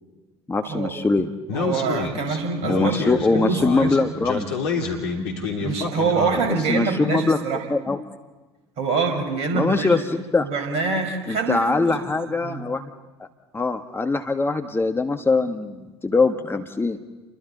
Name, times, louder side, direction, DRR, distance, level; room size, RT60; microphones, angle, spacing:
voice 1, 0.5-1.3 2.7-4.5 6.7-7.4 7.7-8.1 9.5-10.5 11.3-12.8 13.5-17.0, left 3 dB, 15° left, 6 dB, 1.4 m, -22 dB
Speech, 1.5-6.7, left 4 dB, 70° left, 3.2 m, -28 dB
voice 2, 1.5-4.0 5.6-7.6 8.8-9.9 10.4-12.0 12.3-12.6, right 4 dB, 50° right, 4 dB, 5.0 m, -25 dB
30.0 x 23.5 x 4.0 m, 1.2 s
figure-of-eight pair, 65°, 14 cm